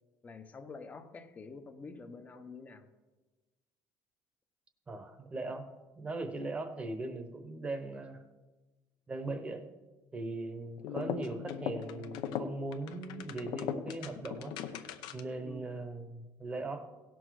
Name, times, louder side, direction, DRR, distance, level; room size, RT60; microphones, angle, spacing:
voice 1, 0.2-2.9 15.4-15.7, left 4 dB, 20° left, 8 dB, 0.7 m, -47 dB
voice 2, 4.9-8.2 9.1-9.7 10.1-16.9, right 2 dB, 15° right, 8 dB, 0.9 m, -40 dB
sound 1, 10.8-15.4, left 8 dB, 70° left, 0.7 m, -39 dB
17.0 x 6.2 x 4.7 m, 1.2 s
cardioid pair, 165°, 8 cm